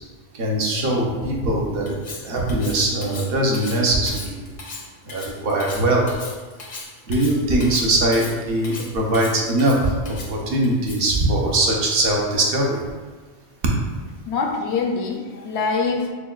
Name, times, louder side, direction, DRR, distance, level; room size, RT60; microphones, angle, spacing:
voice 1, 0.4-2.0 2.2-4.5 5.1-6.0 7.1-9.9 10.3-12.8, right 1 dB, 60° right, -1 dB, 0.9 m, -21 dB
Cutlery silverware, 1.9-11.2, left 3 dB, 50° left, 0.6 m, -37 dB
voice 2, 14.3-16.1, left 4 dB, 85° left, 2 dB, 0.9 m, -24 dB
6.0 x 2.2 x 2.3 m, 1.4 s
omnidirectional pair, 1.1 m